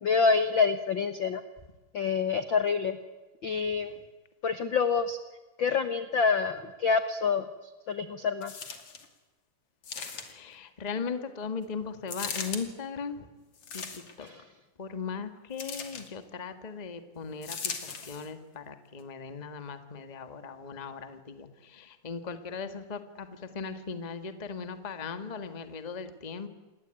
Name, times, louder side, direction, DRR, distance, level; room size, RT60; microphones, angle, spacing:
voice 1, 0.0-1.4 1.9-3.0 3.4-3.9 4.4-5.2 5.6-7.4 7.9-8.5 14.2-14.4, left 5 dB, 60° left, 10 dB, 1.2 m, -27 dB
sound 1, 8.4-9.1 9.8-10.5 12.1-12.6 13.6-14.3 15.6-16.1 17.4-18.3 19.0-19.1, left 5 dB, 45° left, 3.3 m, -38 dB
voice 2, 10.3-13.3 13.7-14.3 14.8-26.5, left 5 dB, 25° left, 9 dB, 0.9 m, -38 dB
28.5 x 21.5 x 9.1 m, 1.2 s
omnidirectional pair, 3.9 m